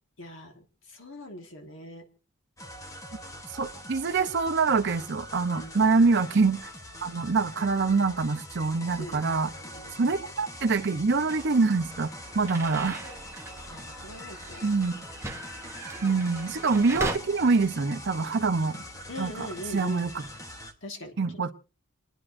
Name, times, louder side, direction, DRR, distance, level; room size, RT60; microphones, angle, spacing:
voice 1, 0.2-2.0 5.5-5.9 9.0-9.3 9.6-10.2 12.4-12.6 13.7-14.6 16.0-16.2 19.1-20.0 20.8-21.5, left 1 dB, 65° left, 4 dB, 1.8 m, -42 dB
sound 1, 2.6-20.7, left 1 dB, 15° left, 1.0 m, -43 dB
voice 2, 3.5-6.7 7.0-9.5 10.0-12.1 12.3-13.0 14.6-14.9 16.0-18.8 19.2-19.5 19.7-20.2 21.2-21.5, right 4 dB, 55° right, 7 dB, 0.6 m, -25 dB
sound 2, 11.3-17.2, right 2 dB, 15° right, 1.0 m, -39 dB
29.0 x 9.8 x 2.6 m, 0.35 s
head